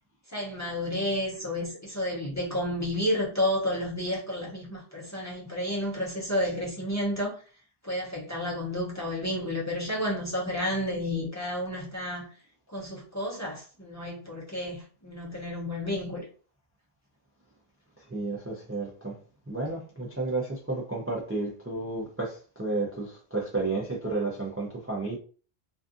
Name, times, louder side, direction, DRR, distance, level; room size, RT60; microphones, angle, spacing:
voice 1, 0.3-7.4 7.8-12.3 12.7-16.3, left 1 dB, 20° left, 0.6 m, -31 dB
voice 2, 18.1-19.2 19.5-25.2, right 3 dB, 20° right, 0.4 m, -32 dB
2.5 x 2.4 x 2.5 m
omnidirectional pair, 1.1 m